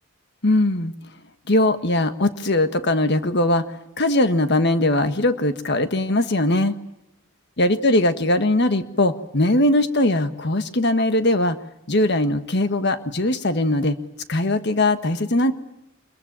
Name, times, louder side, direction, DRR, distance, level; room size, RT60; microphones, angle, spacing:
voice 1, 0.4-0.9 1.5-6.7 7.6-11.6 11.9-14.0 14.3-15.5, left 1 dB, 55° left, 9 dB, 1.5 m, -20 dB
26.5 x 22.5 x 8.9 m, 0.86 s
head